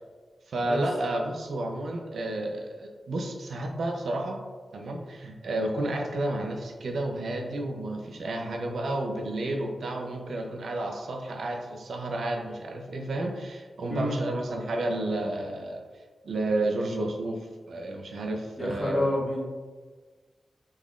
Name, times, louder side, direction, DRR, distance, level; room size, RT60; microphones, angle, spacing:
voice 1, 0.5-4.4 4.7-15.8 16.2-19.1, right 1 dB, 85° right, 2 dB, 0.4 m, -31 dB
voice 2, 18.6-19.7, left 1 dB, 25° left, -2 dB, 0.8 m, -29 dB
3.6 x 3.1 x 2.4 m, 1.4 s
wide cardioid pair, 75°, 0 cm